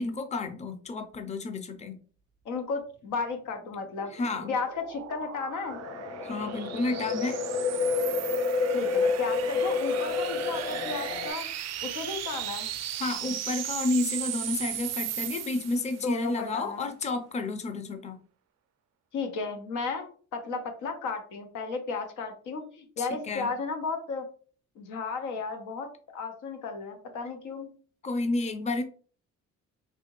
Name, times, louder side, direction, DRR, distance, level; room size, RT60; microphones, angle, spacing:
voice 1, 0.0-2.0 4.1-4.6 6.2-7.4 13.0-18.2 23.0-23.5 28.0-28.8, left 2 dB, 25° left, 7 dB, 0.5 m, -31 dB
voice 2, 2.4-5.8 8.7-11.5 11.8-12.7 15.9-16.9 19.1-20.1 20.3-24.3 24.8-27.7, left 4 dB, 85° left, 5 dB, 0.9 m, -34 dB
sound 1, 3.6-16.2, right 11 dB, 60° right, 0.4 m, -37 dB
sound 2, 5.7-11.3, left 4 dB, 50° left, 1.7 m, -29 dB
3.4 x 2.8 x 3.0 m, 0.42 s
cardioid pair, 90°, 30 cm